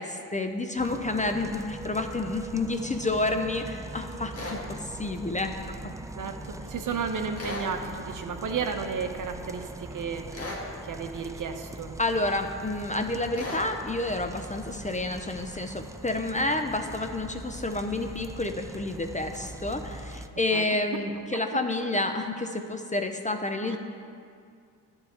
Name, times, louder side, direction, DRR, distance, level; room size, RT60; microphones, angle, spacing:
voice 1, 0.0-4.6 5.0-5.5 12.0-23.8, left 2 dB, 20° left, 5 dB, 0.7 m, -29 dB
sound 1, 0.8-20.3, right 2 dB, 10° right, 0.4 m, -41 dB
sound 2, 4.3-4.6 7.4-7.7 10.3-10.7 13.3-13.7, left 2 dB, 35° left, 2.1 m, -35 dB
voice 2, 6.1-10.2 10.9-11.9 20.5-20.8 21.3-21.4 23.7-23.8, right 5 dB, 50° right, 5 dB, 1.0 m, -33 dB
10.0 x 4.9 x 8.0 m, 2.3 s
supercardioid pair, 60°, 41 cm